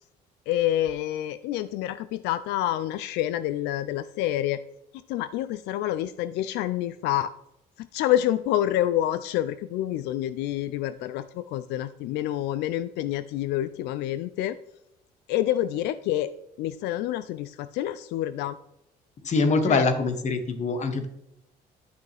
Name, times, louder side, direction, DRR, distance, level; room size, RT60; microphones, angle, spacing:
voice 1, 0.5-4.6 4.9-7.3 7.8-14.6 15.3-16.3 16.6-18.6 19.6-19.8, left 13 dB, 90° left, 14 dB, 0.4 m, -28 dB
voice 2, 19.2-21.1, left 3 dB, 45° left, 8 dB, 1.2 m, -24 dB
11.0 x 6.0 x 3.4 m, 0.85 s
cardioid pair, 110°, 17 cm